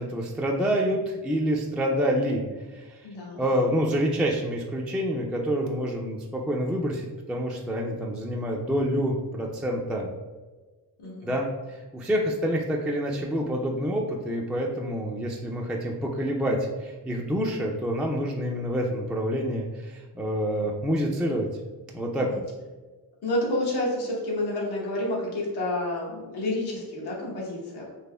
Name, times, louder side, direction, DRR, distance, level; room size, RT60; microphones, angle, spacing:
voice 1, 0.0-2.4 2.7-3.0 3.4-10.1 11.2-21.5 21.9-22.3, equal, ahead, -1 dB, 0.3 m, -27 dB
voice 2, 3.0-3.4 11.0-11.3 22.1-22.4 23.2-27.9, left 1 dB, 80° left, -3 dB, 1.1 m, -29 dB
4.2 x 2.8 x 2.2 m, 1.3 s
cardioid pair, 65°, 39 cm